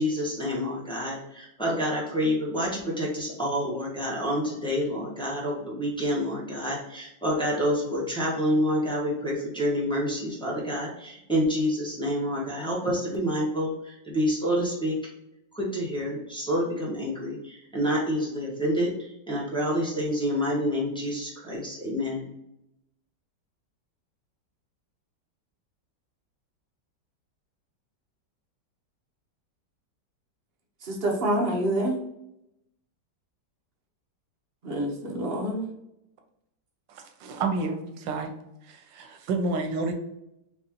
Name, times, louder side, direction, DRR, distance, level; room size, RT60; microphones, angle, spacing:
voice 1, 0.0-15.0 15.5-22.3, equal, 5° left, -5 dB, 0.9 m, -28 dB
voice 2, 30.8-32.0 34.6-35.7, right 1 dB, 45° right, 0 dB, 0.8 m, -27 dB
voice 3, 36.9-38.3 38.6-39.9, right 3 dB, 85° right, 5 dB, 1.4 m, -30 dB
4.7 x 2.9 x 2.8 m, 0.84 s
omnidirectional pair, 1.9 m